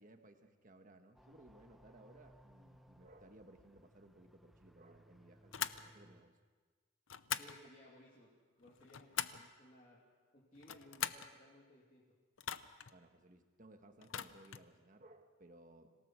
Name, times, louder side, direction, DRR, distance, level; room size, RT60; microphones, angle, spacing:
voice 1, 0.0-6.4 12.9-15.9, right 1 dB, 40° right, 6 dB, 1.4 m, -61 dB
sound 1, 1.1-6.2, equal, ahead, 0.8 m, -64 dB
sound 2, 5.5-5.8 7.1-7.6 8.6-9.5 10.5-11.3 12.4-12.9 14.0-14.7, left 10 dB, 65° left, 0.7 m, -41 dB
voice 2, 7.3-10.0 10.3-12.0, left 1 dB, 35° left, -5 dB, 2.8 m, -61 dB
26.5 x 17.5 x 6.3 m, 1.4 s
head